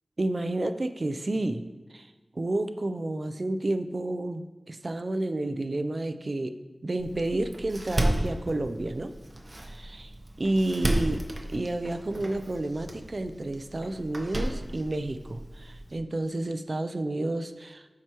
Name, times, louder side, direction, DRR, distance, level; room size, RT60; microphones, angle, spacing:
voice 1, 0.2-1.6 1.9-9.1 9.6-17.9, right 2 dB, 55° right, 10 dB, 0.4 m, -31 dB
Door, 7.0-16.0, right 1 dB, 35° right, 0.9 m, -33 dB
11.0 x 4.8 x 3.0 m, 1.2 s
wide cardioid pair, 60°, 0 cm